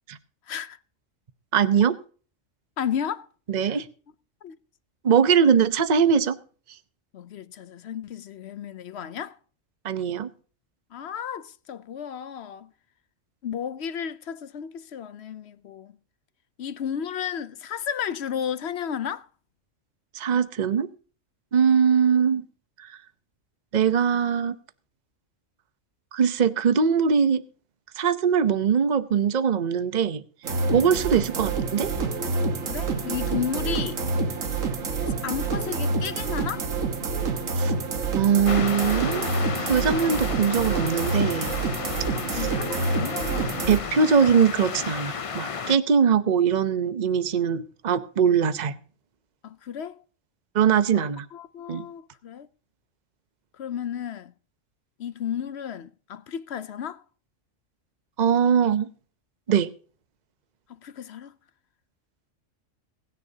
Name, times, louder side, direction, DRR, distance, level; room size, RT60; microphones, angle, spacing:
voice 1, 0.5-0.8 2.8-3.3 3.6-3.8 4.4-4.6 7.1-9.4 10.9-12.7 13.4-16.0 16.6-19.3 30.7-31.0 32.6-34.0 35.2-36.7 42.0-43.9 49.4-50.0 50.9-52.5 53.6-54.3 55.0-57.0 60.7-61.4, left 8 dB, 60° left, 0.9 m, -33 dB
voice 2, 1.5-2.0 3.5-3.9 5.0-6.4 9.8-10.3 20.1-20.9 21.5-22.4 23.7-24.6 26.1-27.4 28.0-30.2 30.7-31.9 37.6-37.7 38.1-39.3 39.6-41.5 43.7-48.7 50.5-51.3 51.7-51.8 58.2-58.9 59.5-59.7, right 7 dB, 40° right, 0.8 m, -21 dB
sound 1, 30.4-43.8, right 4 dB, 85° right, 1.9 m, -27 dB
sound 2, 38.4-45.8, left 6 dB, 40° left, 0.5 m, -33 dB
23.0 x 10.0 x 2.8 m
omnidirectional pair, 1.3 m